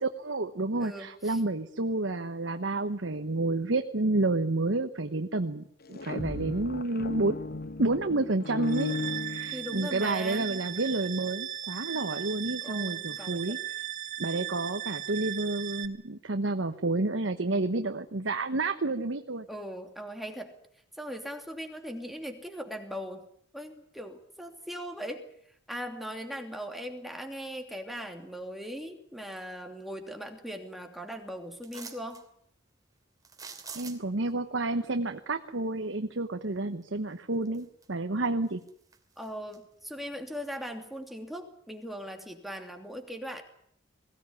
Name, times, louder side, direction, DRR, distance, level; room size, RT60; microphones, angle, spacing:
voice 1, 0.0-5.6 5.9-7.4 7.8-8.9 9.2-13.6 14.2-19.4 33.7-38.6, right 2 dB, 70° right, 7 dB, 1.1 m, -30 dB
voice 2, 0.8-1.4 9.5-10.6 12.6-13.6 19.5-20.5 21.0-23.3 23.5-25.3 25.7-32.2 39.2-43.4, equal, ahead, 3 dB, 2.9 m, -39 dB
sound 1, 5.8-10.1, left 3 dB, 55° left, 0.8 m, -36 dB
sound 2, 8.6-15.9, right 12 dB, 40° right, 2.1 m, -37 dB
sound 3, 31.6-32.2 33.2-34.3 36.8-36.9 37.4-38.1 38.5-39.6 40.0-40.1, right 5 dB, 20° right, 2.8 m, -46 dB
21.5 x 17.5 x 9.8 m, 0.68 s
head